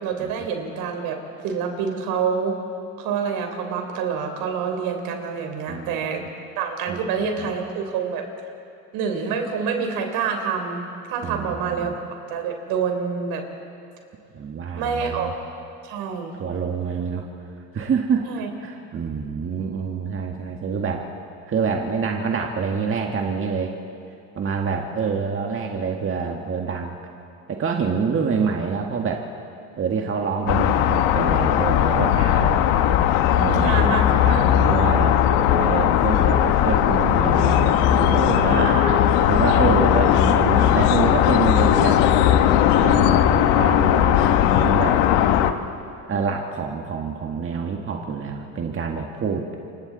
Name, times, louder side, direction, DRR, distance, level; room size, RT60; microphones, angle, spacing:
voice 1, 0.0-2.5 3.0-6.2 6.6-8.3 8.9-10.8 11.1-12.0 12.3-13.4 14.8-15.3 15.8-16.3 18.2-18.5 25.0-25.1 33.6-34.0 34.3-34.5 38.4-39.0 39.6-39.9, right 6 dB, 70° right, 4 dB, 3.9 m, -27 dB
voice 2, 5.7-6.3 6.9-7.0 7.4-7.5 11.2-12.0 14.3-15.3 16.3-17.3 17.7-18.2 18.6-21.1 21.5-23.7 24.3-26.9 27.5-29.2 29.8-32.6 33.4-35.2 35.5-38.8 39.3-42.0 42.7-44.2 44.6-45.0 46.1-49.5, right 5 dB, 35° right, 1 dB, 1.8 m, -26 dB
sound 1, 30.5-45.5, left 10 dB, 80° left, 1.3 m, -18 dB
28.0 x 25.5 x 4.1 m, 2.7 s
supercardioid pair, 95°, 37 cm